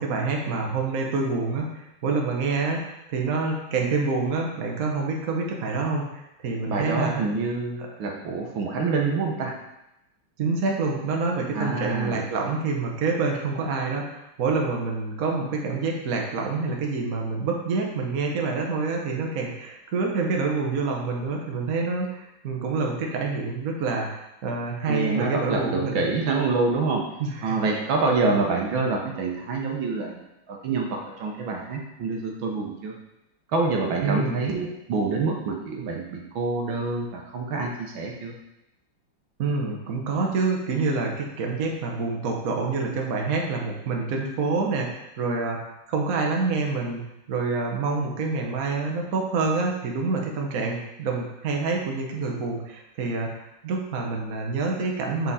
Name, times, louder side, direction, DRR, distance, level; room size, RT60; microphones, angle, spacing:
voice 1, 0.0-7.1 10.4-26.1 27.2-27.8 34.0-34.4 39.4-55.3, right 4 dB, 50° right, 0 dB, 1.2 m, -27 dB
voice 2, 6.7-9.5 11.5-12.2 24.9-27.0 27.4-32.9 33.5-38.3, right 3 dB, 70° right, 0 dB, 1.7 m, -26 dB
8.1 x 4.6 x 4.1 m, 0.90 s
omnidirectional pair, 2.4 m